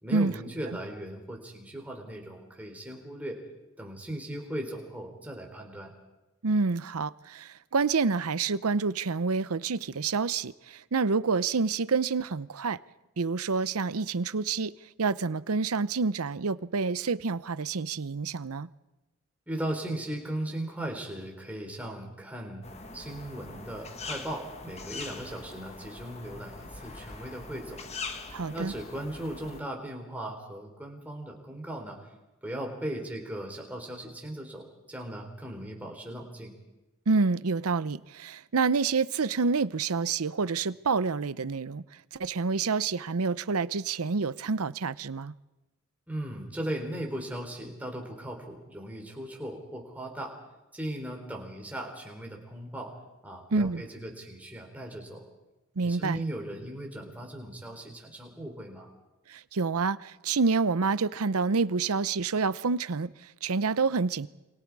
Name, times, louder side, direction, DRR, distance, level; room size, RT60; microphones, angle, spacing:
voice 1, 0.0-3.4 3.8-5.9 19.5-22.6 22.9-27.8 28.5-32.1 32.4-36.5 46.1-50.3 50.7-52.9 53.2-55.2 55.8-58.9, right 1 dB, 5° right, 3.7 m, -38 dB
voice 2, 6.4-12.8 13.2-14.7 15.0-18.7 28.3-28.7 37.1-41.8 42.1-45.3 53.5-53.8 55.8-56.2 59.3-64.3, right 4 dB, 85° right, 0.7 m, -28 dB
sound 1, 22.6-29.6, left 4 dB, 30° left, 1.5 m, -42 dB
29.5 x 25.0 x 4.8 m
head